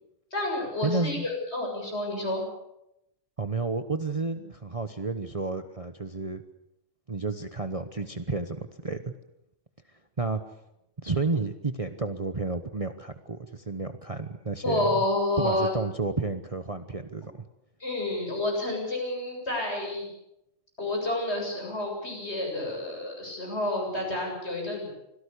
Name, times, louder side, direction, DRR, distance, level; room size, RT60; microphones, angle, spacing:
voice 1, 0.3-2.4 14.6-15.7 17.8-20.1 20.8-24.9, left 2 dB, 55° left, 0 dB, 7.7 m, -29 dB
voice 2, 0.8-1.3 3.4-6.4 7.1-9.1 10.2-10.4 11.0-14.9 15.4-17.3, right 3 dB, 30° right, 9 dB, 1.0 m, -31 dB
25.5 x 17.0 x 8.4 m, 0.85 s
omnidirectional pair, 1.3 m